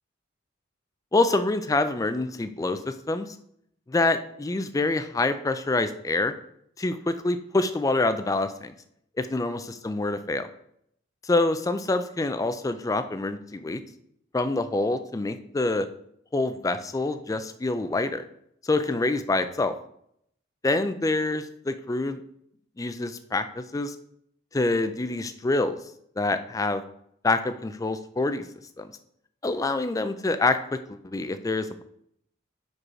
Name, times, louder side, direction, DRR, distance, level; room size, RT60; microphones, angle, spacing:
voice 1, 1.1-3.4 3.9-6.3 6.8-8.7 9.2-10.5 11.2-13.8 14.3-15.9 16.3-18.2 18.6-19.7 20.6-22.2 22.8-23.9 24.5-25.8 26.2-26.8 27.2-28.4 28.8-28.9 29.4-31.8, left 2 dB, 15° left, 10 dB, 0.3 m, -26 dB
4.9 x 4.7 x 4.9 m, 0.72 s
head